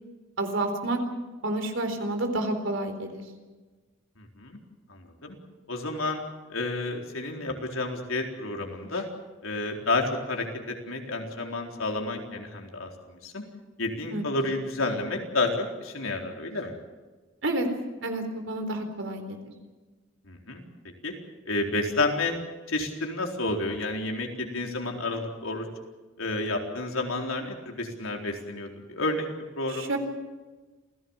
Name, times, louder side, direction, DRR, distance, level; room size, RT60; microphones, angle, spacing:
voice 1, 0.4-1.0 1.4-3.2 14.1-14.5 17.4-17.7 18.0-19.4 29.7-30.0, right 2 dB, 65° right, 6 dB, 4.1 m, -29 dB
voice 2, 4.2-4.6 4.9-5.4 5.7-6.2 6.5-9.1 9.4-13.4 13.8-16.8 20.3-20.7 21.0-21.1 21.5-22.3 22.7-25.7 26.2-29.3 29.6-30.0, left 2 dB, 90° left, 2 dB, 4.1 m, -30 dB
28.0 x 17.0 x 7.3 m, 1.3 s
head